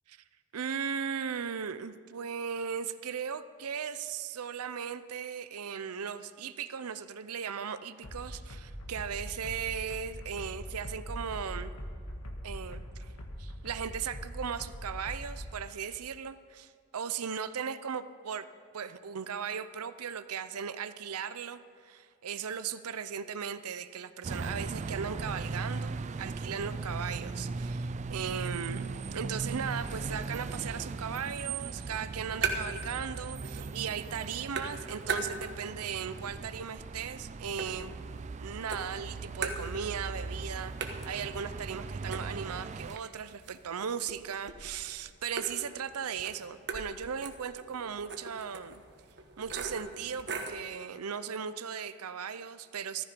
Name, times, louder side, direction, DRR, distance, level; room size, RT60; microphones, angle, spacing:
voice 1, 0.5-11.7 12.4-13.1 13.4-18.5 18.7-38.0 38.4-48.8 49.4-53.1, right 7 dB, 80° right, 13 dB, 0.6 m, -37 dB
sound 1, 8.0-15.5, equal, 80° left, 1.7 m, -42 dB
sound 2, 24.2-43.0, right 4 dB, 30° right, 0.3 m, -38 dB
sound 3, 31.9-32.9 33.2-33.9 34.2-35.8 36.2-38.3 38.7-40.1 40.4-40.5 40.8-50.7, right 5 dB, 50° right, 1.2 m, -40 dB
14.5 x 14.0 x 5.2 m, 2.3 s
head